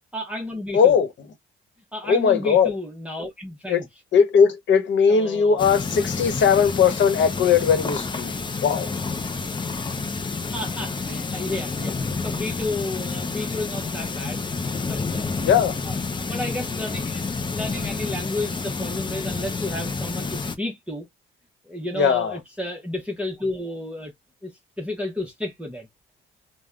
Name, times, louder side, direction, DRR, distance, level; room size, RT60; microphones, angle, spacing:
voice 1, 0.1-1.0 1.9-3.9 5.1-5.6 10.5-14.4 14.8-15.3 15.8-17.3 17.5-21.1 21.6-24.1 24.4-24.5 24.8-25.9, left 1 dB, 5° right, 0.8 m, -32 dB
voice 2, 0.7-1.1 2.1-2.7 3.7-3.8 4.1-8.3 8.6-8.9 15.4-15.7 21.9-22.4, left 6 dB, 70° left, 1.0 m, -19 dB
sound 1, 5.6-20.6, left 4 dB, 25° left, 0.6 m, -29 dB
3.4 x 2.2 x 2.4 m
cardioid pair, 90°, 20 cm